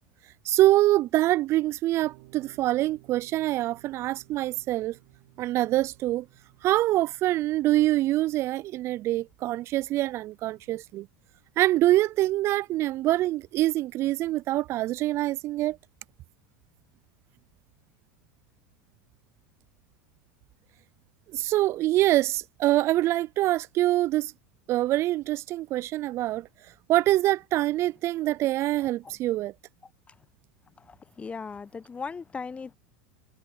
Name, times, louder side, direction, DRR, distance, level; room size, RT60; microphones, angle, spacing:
voice 1, 0.4-5.0 5.4-6.3 6.6-11.1 11.6-15.8 21.3-24.3 24.7-26.5 26.9-29.5, right 16 dB, 40° right, 0.4 m, -25 dB
sound 1, 2.0-8.4, right 26 dB, 60° right, 4.7 m, -57 dB
voice 2, 31.2-32.7, left 5 dB, 20° left, 0.9 m, -37 dB
hypercardioid pair, 85°, 7 cm